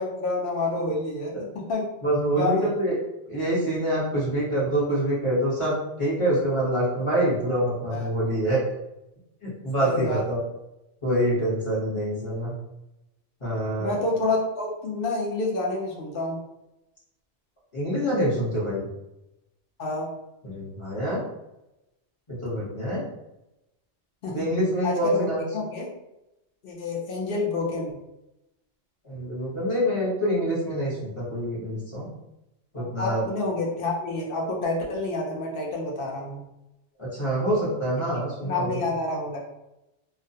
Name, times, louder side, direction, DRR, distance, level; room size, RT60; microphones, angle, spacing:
voice 1, 0.0-1.3 1.7-1.8 2.3-2.7 7.9-8.1 9.8-10.2 13.8-16.4 19.8-20.1 24.2-24.4 24.8-25.9 26.6-28.0 32.8-36.4 38.4-39.4, left 2 dB, 60° left, -2 dB, 0.7 m, -28 dB
voice 2, 2.0-3.0 3.3-8.6 9.4-10.4 11.0-12.5 13.4-13.9 17.7-18.9 20.4-21.2 22.3-23.0 24.3-25.5 29.0-32.1 32.7-33.3 37.0-38.9, right 1 dB, 30° left, -7 dB, 0.8 m, -26 dB
2.3 x 2.1 x 2.7 m, 0.91 s
omnidirectional pair, 1.2 m